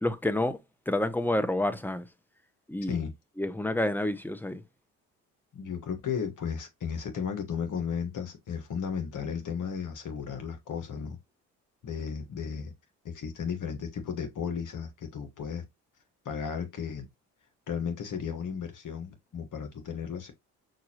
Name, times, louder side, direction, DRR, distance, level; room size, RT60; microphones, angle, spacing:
voice 1, 0.0-2.1 2.7-3.0 3.4-4.6, left 1 dB, 5° left, 0.8 m, -29 dB
voice 2, 5.5-11.2 11.8-12.7 13.0-15.6 16.2-17.0 17.7-20.3, left 7 dB, 55° left, 1.5 m, -34 dB
5.9 x 2.7 x 2.9 m
supercardioid pair, 60°, 36 cm